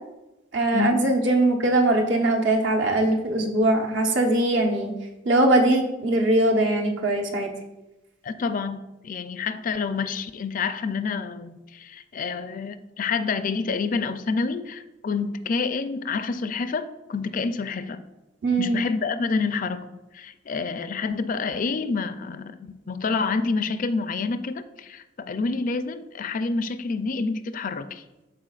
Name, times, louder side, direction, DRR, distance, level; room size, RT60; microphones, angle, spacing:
voice 1, 0.5-4.9 5.2-7.5 18.4-18.8, right 2 dB, 70° right, 1 dB, 1.1 m, -21 dB
voice 2, 8.2-18.0 18.6-19.9 20.1-28.0, left 4 dB, 45° left, 11 dB, 0.4 m, -28 dB
12.5 x 4.4 x 2.4 m, 1.0 s
head